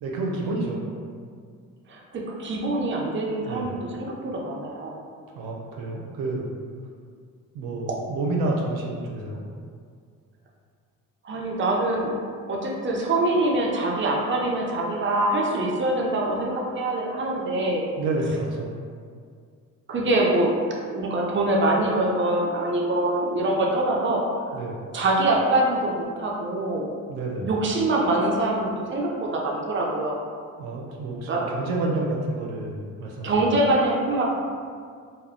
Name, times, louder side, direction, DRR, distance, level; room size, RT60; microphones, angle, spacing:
voice 1, 0.0-0.9 3.5-3.8 5.4-6.5 7.5-9.4 18.0-18.7 24.5-24.8 27.1-27.5 30.6-33.3, right 2 dB, 85° right, -1 dB, 0.5 m, -29 dB
voice 2, 1.9-5.0 11.2-12.1 12.5-17.8 19.9-20.5 20.9-24.2 24.9-26.9 27.4-30.2 31.3-31.5 33.2-34.2, right 2 dB, 35° right, -2 dB, 0.6 m, -24 dB
2.2 x 2.1 x 3.5 m, 2.1 s
supercardioid pair, 65°, 35 cm